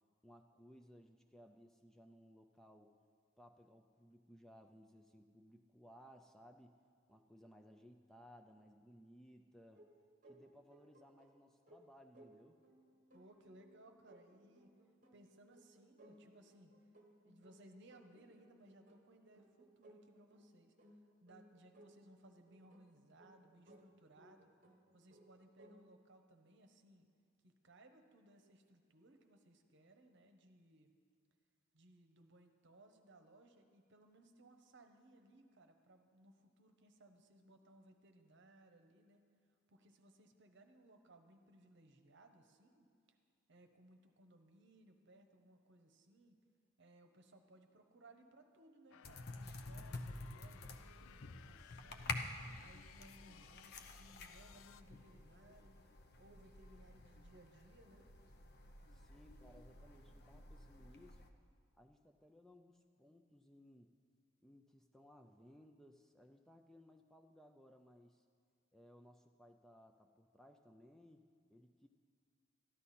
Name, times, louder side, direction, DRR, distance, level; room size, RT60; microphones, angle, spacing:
voice 1, 0.2-3.0 3.4-6.7 7.1-9.9 10.3-12.6 58.9-61.2 61.8-63.9 64.4-68.2 68.7-71.9, equal, ahead, 4 dB, 0.4 m, -62 dB
sound 1, 9.7-25.8, right 1 dB, 40° right, 1.2 m, -65 dB
voice 2, 13.1-14.7 15.1-16.7 17.2-20.8 21.2-24.5 24.9-27.1 27.4-30.9 31.7-39.2 39.7-42.9 43.5-46.4 46.8-52.2 52.6-55.8 56.2-58.1, right 1 dB, 60° right, 6 dB, 0.9 m, -64 dB
sound 2, 48.9-54.8, left 10 dB, 80° left, 0.3 m, -62 dB
sound 3, 49.0-61.3, left 3 dB, 55° left, 0.7 m, -50 dB
13.5 x 11.5 x 4.2 m, 2.3 s
head